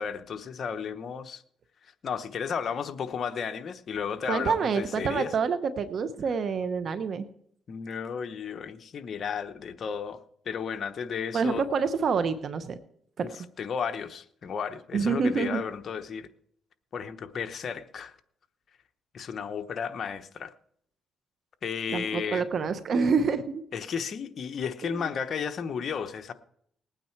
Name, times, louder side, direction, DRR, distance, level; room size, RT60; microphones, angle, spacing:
voice 1, 0.0-1.4 2.0-5.3 7.7-11.7 13.2-16.3 16.9-18.2 19.1-20.5 21.6-22.5 23.7-26.3, left 6 dB, 55° left, 0.9 m, -33 dB
voice 2, 4.3-7.3 11.3-12.8 13.2-13.3 14.9-15.6 21.9-23.6 24.8-24.9, right 5 dB, 55° right, 0.9 m, -27 dB
19.5 x 9.2 x 4.6 m
cardioid pair, 90°, 0 cm